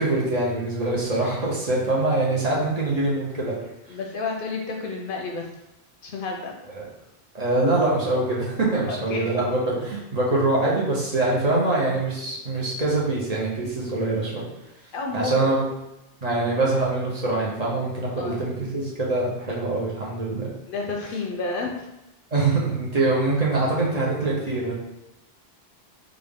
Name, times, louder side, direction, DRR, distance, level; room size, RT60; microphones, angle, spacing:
voice 1, 0.0-3.5 6.7-6.8 7.3-14.5 15.1-15.6 16.2-20.5 22.3-24.7, right 2 dB, 45° right, -4 dB, 0.8 m, -24 dB
voice 2, 3.9-5.5 6.0-6.7 8.9-9.3 14.9-15.6 18.2-18.5 20.7-21.7, left 3 dB, 65° left, 1 dB, 0.7 m, -31 dB
3.5 x 2.4 x 3.5 m, 0.90 s
omnidirectional pair, 1.0 m